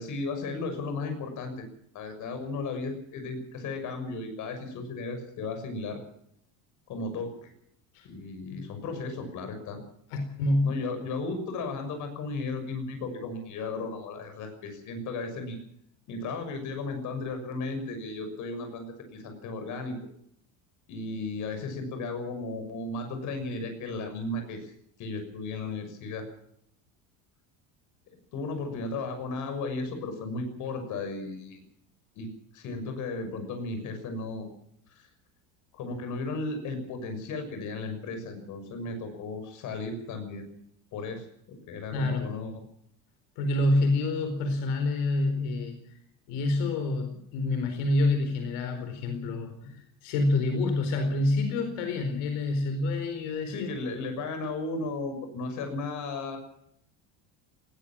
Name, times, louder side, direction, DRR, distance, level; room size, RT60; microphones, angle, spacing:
voice 1, 0.0-1.6 1.9-6.0 6.9-7.5 8.0-9.8 10.6-15.6 16.1-20.0 20.9-24.7 25.0-26.3 28.3-31.6 32.1-32.3 32.5-34.5 35.0-35.1 35.7-40.5 40.9-42.5 49.6-49.7 53.5-56.4, left 3 dB, 45° left, 7 dB, 6.4 m, -35 dB
voice 2, 10.1-10.8 41.9-42.3 43.4-45.8 46.3-53.7, left 2 dB, 75° left, 6 dB, 4.5 m, -27 dB
20.0 x 17.5 x 7.5 m, 0.71 s
cardioid pair, 165°, 40 cm